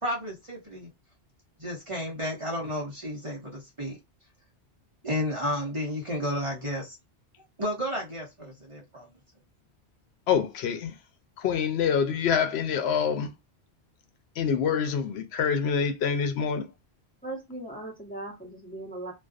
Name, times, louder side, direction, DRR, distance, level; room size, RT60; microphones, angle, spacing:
voice 1, 0.0-0.9 1.6-4.0 5.0-7.0 7.6-9.1, left 1 dB, 35° right, 0.7 m, -32 dB
voice 2, 10.3-10.9 11.4-13.3 14.4-16.7, left 7 dB, 75° left, 0.8 m, -26 dB
voice 3, 17.2-19.1, right 2 dB, 10° left, 0.9 m, -38 dB
2.4 x 2.3 x 2.4 m
omnidirectional pair, 1.1 m